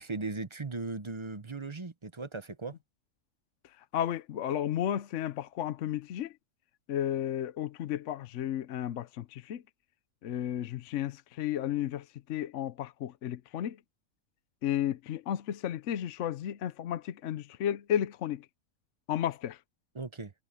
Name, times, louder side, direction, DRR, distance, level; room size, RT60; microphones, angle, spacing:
voice 1, 0.0-2.7 19.9-20.3, right 3 dB, 25° right, 0.8 m, -38 dB
voice 2, 3.9-6.3 6.9-9.6 10.2-13.8 14.6-18.5 19.1-19.6, left 10 dB, 65° left, 1.0 m, -33 dB
omnidirectional pair, 1.4 m